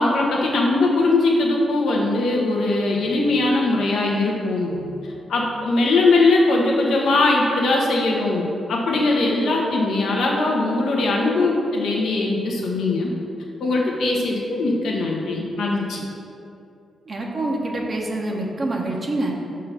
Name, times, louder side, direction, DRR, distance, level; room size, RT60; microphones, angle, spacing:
voice 1, 0.0-4.8 5.3-13.1 13.6-16.0, left 2 dB, 75° left, -1 dB, 1.0 m, -20 dB
voice 2, 2.9-3.4 4.7-5.1 17.1-19.3, right 2 dB, 50° right, -1 dB, 1.0 m, -27 dB
5.6 x 3.8 x 5.6 m, 2.6 s
supercardioid pair, 50°, 0 cm